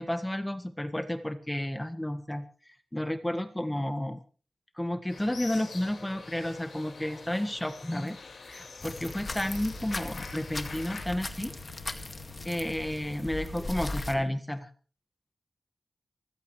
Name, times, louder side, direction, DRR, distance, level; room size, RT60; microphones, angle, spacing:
voice 1, 0.0-2.4 2.9-4.2 4.8-8.2 8.4-11.5 12.4-14.7, left 1 dB, 10° left, 8 dB, 1.5 m, -32 dB
sound 1, 5.1-11.1, left 4 dB, 75° left, 4.6 m, -45 dB
sound 2, 8.8-14.1, left 2 dB, 35° left, 2.0 m, -38 dB
28.0 x 15.0 x 3.2 m, 0.40 s
wide cardioid pair, 95°, 0 cm